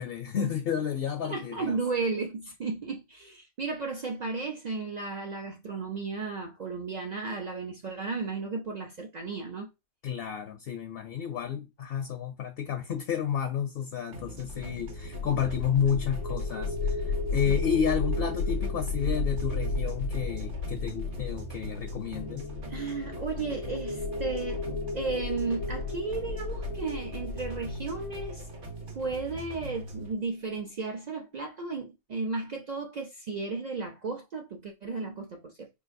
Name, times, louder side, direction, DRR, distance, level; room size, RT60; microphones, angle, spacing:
voice 1, 0.0-1.8 10.0-22.5, left 8 dB, 65° left, 0.6 m, -31 dB
voice 2, 1.2-9.7 17.5-17.6 22.7-28.4 28.9-35.7, right 4 dB, 70° right, 0.4 m, -34 dB
sound 1, 14.1-30.1, right 2 dB, 45° right, 0.9 m, -43 dB
sound 2, 14.5-29.5, left 3 dB, 80° left, 1.0 m, -33 dB
4.5 x 2.5 x 2.5 m
omnidirectional pair, 1.3 m